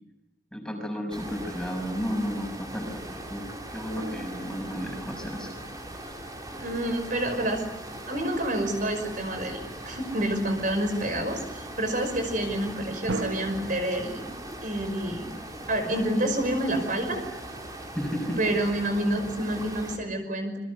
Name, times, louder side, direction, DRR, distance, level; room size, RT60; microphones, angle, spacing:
voice 1, 0.5-5.5 17.9-18.4, equal, 5° left, 3 dB, 6.2 m, -33 dB
sound 1, 1.1-20.0, right 1 dB, 20° right, 4.5 m, -40 dB
sound 2, 3.9-6.0 13.1-13.7, right 2 dB, 85° right, 1.4 m, -37 dB
voice 2, 6.5-7.6 8.1-14.3 14.6-15.3 15.7-17.2 18.4-20.6, right 1 dB, 45° right, 6 dB, 5.7 m, -28 dB
30.0 x 24.0 x 8.2 m, 0.92 s
head